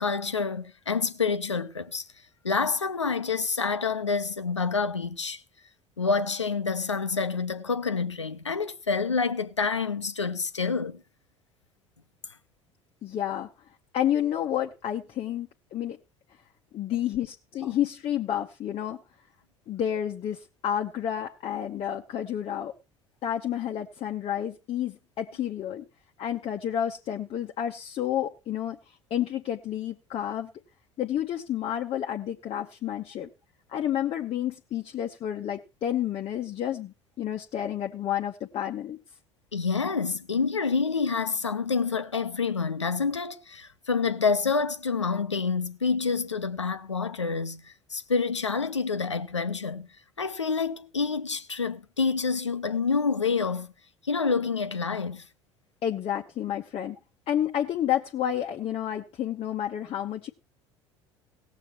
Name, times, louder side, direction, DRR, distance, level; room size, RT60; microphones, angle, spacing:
voice 1, 0.0-2.0 2.4-5.4 6.0-11.0 39.5-49.9 50.2-53.7 54.0-55.3, left 5 dB, 85° left, 0.7 m, -28 dB
voice 2, 13.0-13.5 13.9-16.0 16.7-19.0 19.7-22.7 23.2-25.8 26.2-28.8 29.1-30.5 31.0-33.3 33.7-39.0 55.8-57.0 57.3-60.3, left 10 dB, 40° left, 0.8 m, -30 dB
18.0 x 7.2 x 4.2 m
figure-of-eight pair, 60°, 15 cm